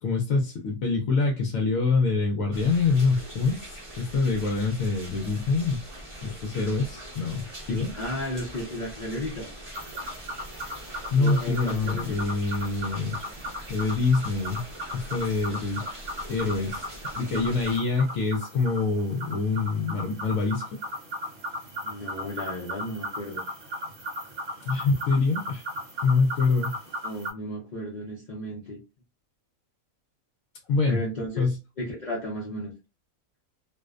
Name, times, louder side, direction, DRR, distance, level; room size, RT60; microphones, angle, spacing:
voice 1, 0.0-5.8 6.2-7.9 11.1-13.2 13.7-14.6 14.9-16.9 17.2-20.6 24.7-25.6 26.0-26.7 30.7-31.0 31.4-31.6, left 4 dB, 70° left, 2 dB, 0.9 m, -25 dB
sound 1, 2.5-17.8, equal, 30° right, 0.7 m, -42 dB
voice 2, 7.9-9.5 11.2-12.3 21.8-23.4 27.0-28.8 30.9-31.5 31.8-32.7, equal, 55° left, -5 dB, 0.5 m, -34 dB
sound 2, 9.7-27.3, equal, 55° right, 1.0 m, -37 dB
2.6 x 2.1 x 2.3 m, 0.28 s
omnidirectional pair, 1.5 m